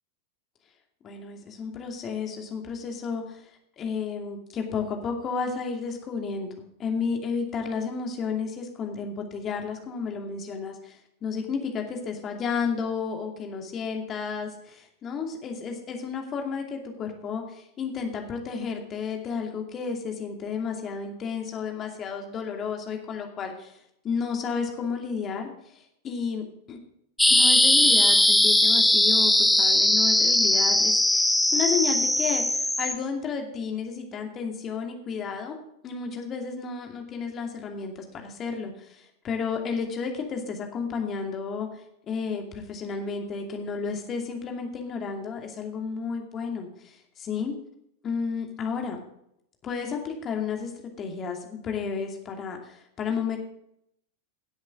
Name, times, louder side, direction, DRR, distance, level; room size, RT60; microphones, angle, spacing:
voice 1, 1.0-3.4 3.8-6.5 6.8-23.8 24.0-26.8 27.3-35.6 35.8-47.5 48.0-49.0 49.6-50.7 51.0-53.4, left 5 dB, 30° left, 3 dB, 2.5 m, -32 dB
sound 1, 27.2-33.0, left 1 dB, 5° left, 0.8 m, -20 dB
17.0 x 8.1 x 3.8 m, 0.74 s
figure-of-eight pair, 90°, 0 cm